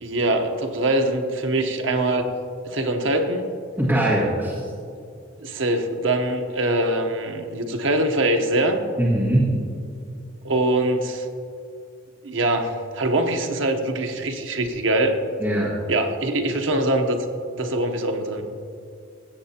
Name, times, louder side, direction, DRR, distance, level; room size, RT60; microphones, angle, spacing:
voice 1, 0.0-2.3 2.6-3.4 5.4-8.8 10.4-11.3 12.2-15.2 15.9-17.2 17.5-18.4, right 1 dB, 70° right, 5 dB, 0.9 m, -23 dB
voice 2, 3.8-4.6 9.0-9.5 15.4-15.7, right 1 dB, 10° right, -8 dB, 1.8 m, -21 dB
16.0 x 7.9 x 2.8 m, 2.3 s
head